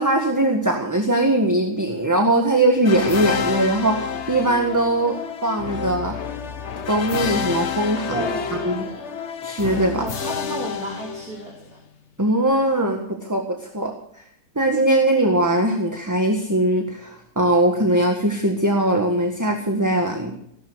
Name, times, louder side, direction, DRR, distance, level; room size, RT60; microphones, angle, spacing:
voice 1, 0.0-5.2 5.4-6.1 6.9-8.3 8.6-8.9 9.4-10.0 12.2-14.2 14.6-20.4, right 1 dB, 10° right, 3 dB, 1.6 m, -20 dB
sound 1, 2.8-11.7, left 7 dB, 45° left, 1.2 m, -29 dB
voice 2, 8.1-9.1 10.0-11.8, right 2 dB, 60° right, -1 dB, 3.4 m, -33 dB
17.0 x 12.0 x 6.4 m, 0.70 s
omnidirectional pair, 1.8 m